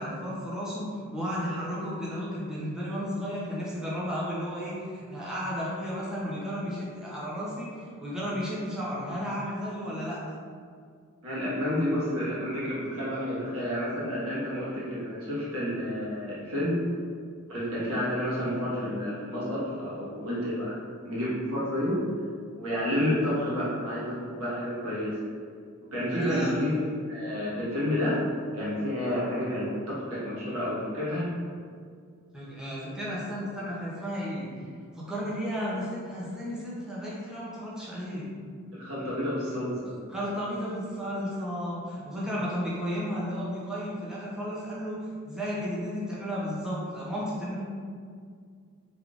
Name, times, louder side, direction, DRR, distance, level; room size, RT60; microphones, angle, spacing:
voice 1, 0.0-10.2 26.1-26.8 32.3-34.7 34.9-38.3 40.1-47.6, equal, 5° right, -8 dB, 0.6 m, -33 dB
voice 2, 11.2-16.8 17.5-20.8 21.0-22.0 22.5-25.2 25.9-28.2 28.5-31.3 38.7-39.9, left 1 dB, 80° right, -8 dB, 1.3 m, -30 dB
3.5 x 3.4 x 2.4 m, 2.1 s
head